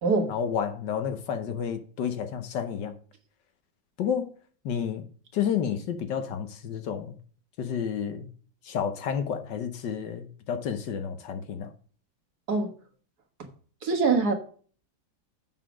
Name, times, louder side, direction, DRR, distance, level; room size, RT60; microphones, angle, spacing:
voice 1, 0.3-3.0 4.0-4.3 4.6-5.1 5.3-7.1 7.6-8.3 8.6-11.7, left 8 dB, 65° left, 1.6 m, -30 dB
voice 2, 13.8-14.3, right 4 dB, 55° right, 1.9 m, -23 dB
7.5 x 6.6 x 5.0 m
omnidirectional pair, 2.1 m